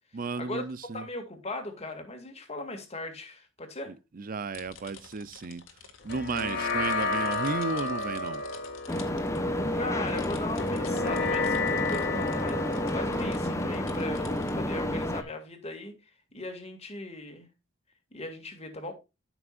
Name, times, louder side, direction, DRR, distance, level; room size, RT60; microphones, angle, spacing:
voice 1, 0.1-1.1 3.9-5.6 6.0-8.4, right 4 dB, 45° right, 0.6 m, -34 dB
voice 2, 0.9-3.9 9.7-16.0 16.3-17.5 18.1-18.9, left 2 dB, 30° left, 2.2 m, -38 dB
sound 1, 4.5-14.5, left 6 dB, 85° left, 1.9 m, -50 dB
sound 2, 6.1-14.8, left 3 dB, 55° left, 2.0 m, -33 dB
sound 3, 8.9-15.2, left 1 dB, 15° left, 1.0 m, -30 dB
13.0 x 6.1 x 2.5 m
head